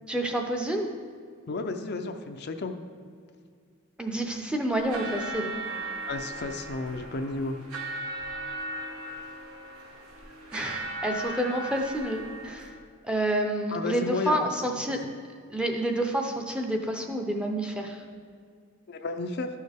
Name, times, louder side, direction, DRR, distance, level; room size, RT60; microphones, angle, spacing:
voice 1, 0.1-0.9 4.0-5.6 10.5-12.7 13.0-15.0 15.5-18.0, right 1 dB, 5° right, 2 dB, 0.6 m, -29 dB
voice 2, 1.5-2.8 6.1-7.6 13.7-14.5 14.9-15.1 18.9-19.5, left 3 dB, 50° left, 6 dB, 0.5 m, -32 dB
sound 1, 4.7-12.7, right 2 dB, 85° right, 1.5 m, -37 dB
12.5 x 6.4 x 3.5 m, 2.1 s
head